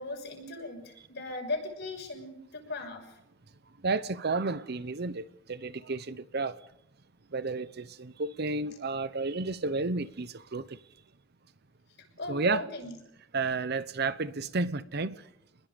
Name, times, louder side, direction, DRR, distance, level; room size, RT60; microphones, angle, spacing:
voice 1, 0.0-3.2 12.2-13.0, left 2 dB, 60° left, 6.3 m, -38 dB
voice 2, 3.8-6.6 7.3-10.8 12.3-12.6 13.3-15.3, right 3 dB, 55° right, 0.8 m, -32 dB
27.5 x 21.0 x 5.2 m
head